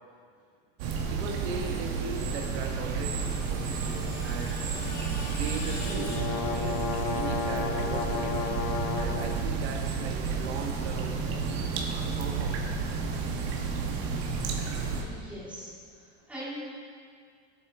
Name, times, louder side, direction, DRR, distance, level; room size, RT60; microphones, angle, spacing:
sound 1, 0.8-15.0, right 5 dB, 75° right, 1.7 m, -31 dB
voice 1, 1.1-4.9 5.3-8.3 9.0-11.2 11.8-12.6, right 4 dB, 90° right, 2 dB, 1.6 m, -39 dB
Screech, 2.8-7.0, left 2 dB, 50° left, 2.7 m, -44 dB
sound 2, 5.5-9.4, left 8 dB, 65° left, 0.9 m, -33 dB
voice 2, 14.6-16.6, equal, 5° right, -9 dB, 2.7 m, -43 dB
15.5 x 8.7 x 3.7 m, 2.1 s
supercardioid pair, 175°, 32 cm